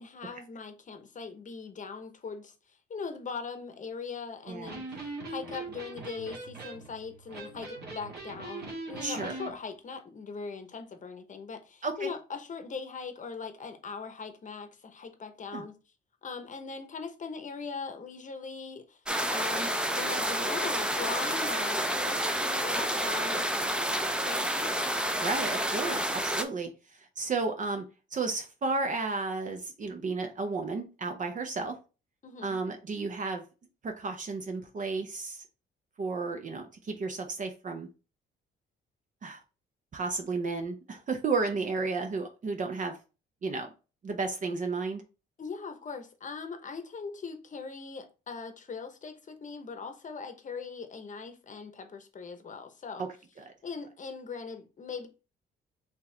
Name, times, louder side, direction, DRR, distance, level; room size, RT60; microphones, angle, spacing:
voice 1, 0.0-4.8 5.3-15.7 16.2-19.0 19.3-23.4 24.2-24.7 32.2-32.6 45.4-53.0 53.6-55.1, left 5 dB, 40° left, 0.9 m, -40 dB
voice 2, 4.5-4.8 9.0-9.3 11.8-12.1 15.5-15.7 25.2-26.7 27.0-27.8 28.1-31.8 32.4-33.4 33.8-35.4 36.0-37.9 39.2-39.4 39.9-43.0 43.4-43.7 44.0-45.0 53.0-53.1 53.4-53.5, right 4 dB, 40° right, 0.7 m, -33 dB
Electric guitar, 4.5-9.5, right 3 dB, 55° right, 1.7 m, -41 dB
sound 1, 19.1-26.4, right 1 dB, 5° right, 0.5 m, -29 dB
4.4 x 2.9 x 3.3 m
cardioid pair, 90°, 20 cm